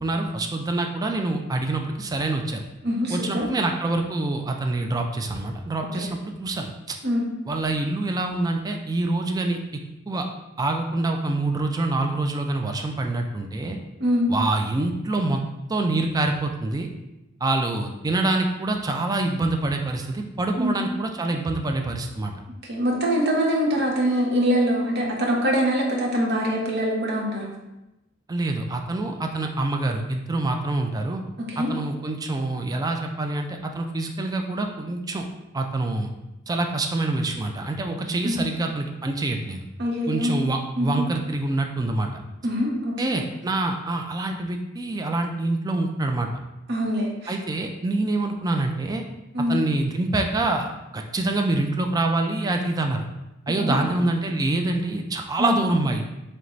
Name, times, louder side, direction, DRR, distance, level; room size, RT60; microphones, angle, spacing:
voice 1, 0.0-2.6 3.1-7.0 7.5-9.6 10.1-10.3 10.6-13.8 14.3-15.4 15.7-16.9 17.4-22.3 28.3-31.2 31.6-35.3 35.5-36.1 36.5-39.6 40.1-42.2 43.0-46.3 47.3-49.0 49.5-53.1 53.5-56.0, right 2 dB, 20° right, 3 dB, 0.3 m, -26 dB
voice 2, 2.8-3.5 5.9-6.1 7.0-7.2 14.0-14.3 20.6-20.8 22.7-27.5 31.5-31.7 38.2-38.5 39.8-40.3 40.8-41.0 42.4-43.1 46.7-47.3 49.3-49.5 53.6-53.8 55.4-55.5, equal, 55° right, -1 dB, 0.9 m, -24 dB
3.9 x 3.3 x 3.1 m, 0.97 s
head